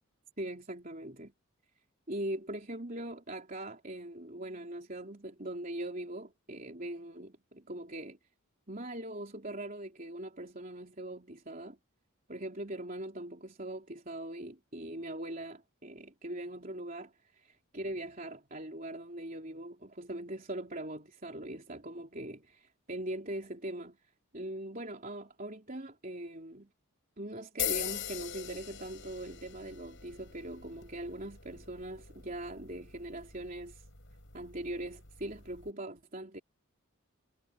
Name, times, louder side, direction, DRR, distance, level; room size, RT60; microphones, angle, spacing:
voice 1, 0.4-1.3 2.1-8.2 8.7-11.8 12.3-24.0 24.3-26.7 27.2-33.9 34.3-36.4, right 1 dB, 40° right, 3.7 m, -41 dB
sound 1, 27.6-35.7, left 10 dB, 55° left, 6.2 m, -42 dB
head